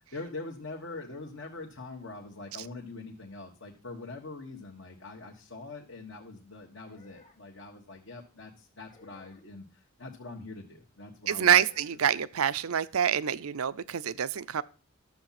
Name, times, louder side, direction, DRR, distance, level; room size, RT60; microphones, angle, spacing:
voice 1, 0.1-12.0, left 3 dB, 60° left, 1.6 m, -43 dB
sound 1, 6.8-7.4 8.9-9.4 11.2-11.9, left 5 dB, 30° left, 1.5 m, -56 dB
voice 2, 11.3-14.6, right 8 dB, 85° right, 0.6 m, -26 dB
12.5 x 7.3 x 5.9 m
head